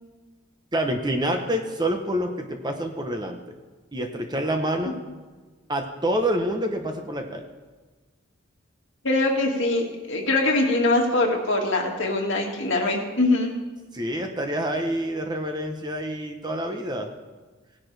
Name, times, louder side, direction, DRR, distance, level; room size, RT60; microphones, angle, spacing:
voice 1, 0.7-3.4 3.9-5.0 5.7-7.4 13.9-17.1, right 1 dB, 20° right, 4 dB, 0.9 m, -27 dB
voice 2, 9.0-13.5, left 2 dB, 65° left, 0 dB, 2.1 m, -23 dB
17.5 x 10.5 x 3.4 m, 1.3 s
head